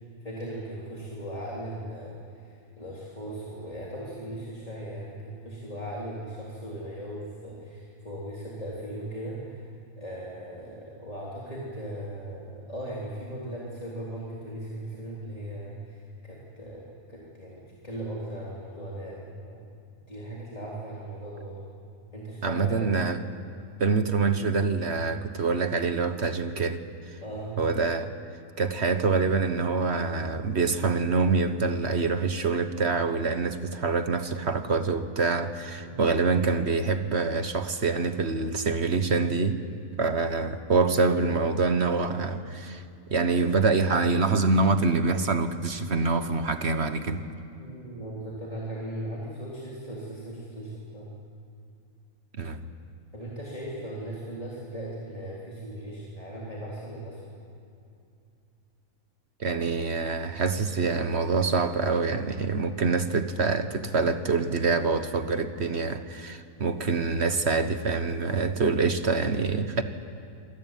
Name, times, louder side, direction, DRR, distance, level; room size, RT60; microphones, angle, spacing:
voice 1, 0.2-9.7 10.0-19.6 20.1-21.7 22.1-23.0 27.2-27.6 35.8-36.1 47.6-51.2 53.1-57.4, right 1 dB, 25° left, -5 dB, 3.6 m, -38 dB
voice 2, 22.4-23.2 23.8-26.8 27.1-27.2 27.6-28.1 28.6-39.6 40.0-42.8 43.1-47.2 52.3-52.6 59.4-69.8, right 4 dB, 50° right, 9 dB, 1.3 m, -25 dB
26.5 x 19.0 x 9.3 m, 2.6 s
omnidirectional pair, 1.5 m